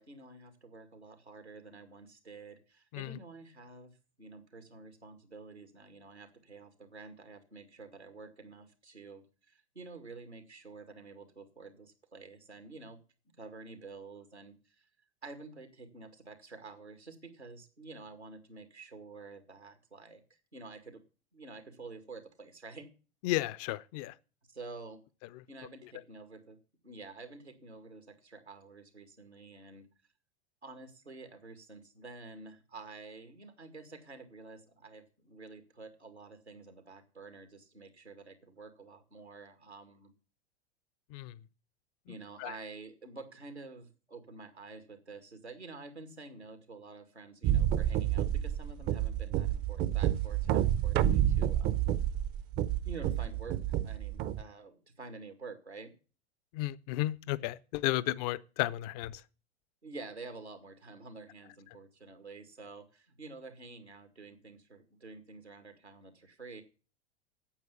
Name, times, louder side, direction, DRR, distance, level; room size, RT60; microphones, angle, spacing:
voice 1, 0.0-3.9 4.2-13.0 13.4-14.9 15.2-21.0 21.3-22.9 24.5-25.0 25.5-26.6 26.8-29.9 30.6-40.1 42.1-51.9 52.8-53.6 53.8-55.9 59.8-66.6, right 3 dB, 90° right, 2.2 m, -49 dB
voice 2, 23.2-24.1 25.3-25.4 41.1-41.4 42.1-42.5 56.5-59.2, left 17 dB, 40° left, 0.7 m, -33 dB
sound 1, 47.4-54.4, right 11 dB, 30° right, 0.7 m, -29 dB
8.9 x 8.1 x 8.3 m
figure-of-eight pair, 90°, 32 cm